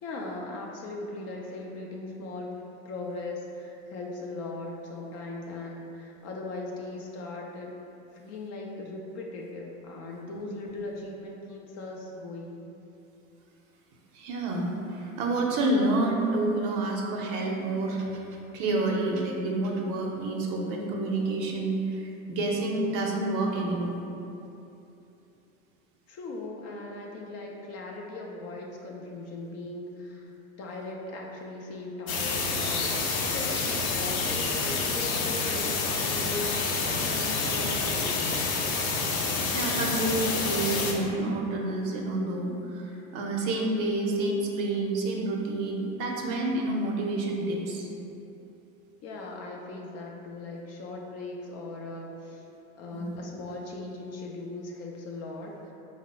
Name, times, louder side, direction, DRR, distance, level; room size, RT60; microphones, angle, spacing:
voice 1, 0.0-2.5 2.8-7.8 8.1-12.6 26.1-30.3 30.6-32.9 33.2-38.5 49.0-52.4 52.7-55.7, left 2 dB, 40° left, -1 dB, 0.5 m, -39 dB
voice 2, 14.1-18.2 18.5-24.0 39.5-47.9 52.9-53.2, right 2 dB, 50° right, 0 dB, 0.6 m, -29 dB
sound 1, 32.1-40.9, left 4 dB, 80° left, 0.6 m, -28 dB
3.5 x 2.0 x 4.0 m, 2.9 s
hypercardioid pair, 90°, 41 cm